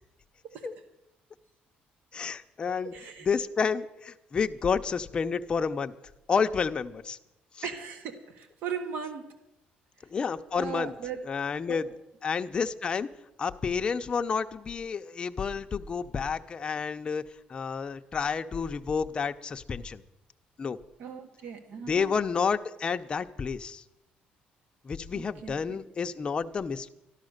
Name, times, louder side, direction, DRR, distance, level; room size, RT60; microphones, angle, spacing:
voice 1, 2.1-2.9 3.2-5.9 6.3-7.2 7.5-7.6 10.1-10.9 11.3-11.9 12.2-13.1 13.4-17.2 17.5-20.0 20.6-20.8 21.8-23.8 24.8-26.9, left 5 dB, 30° left, 7 dB, 0.6 m, -30 dB
voice 2, 2.8-3.3 7.6-9.3 10.6-11.2 11.7-11.8 21.0-22.1 25.1-25.8, right 7 dB, 65° right, 7 dB, 1.4 m, -38 dB
13.0 x 12.0 x 6.5 m, 0.90 s
cardioid pair, 135°, 3 cm